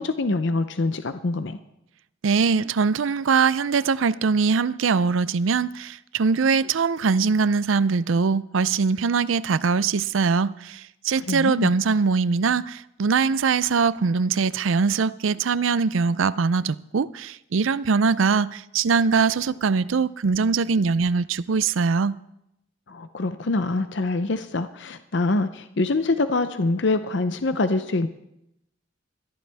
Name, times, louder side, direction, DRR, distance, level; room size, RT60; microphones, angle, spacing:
voice 1, 0.0-1.6 11.3-11.7 22.9-28.1, left 2 dB, 60° left, 0.6 m, -25 dB
voice 2, 2.2-22.2, right 5 dB, 85° right, 0.5 m, -22 dB
21.0 x 14.0 x 3.5 m
head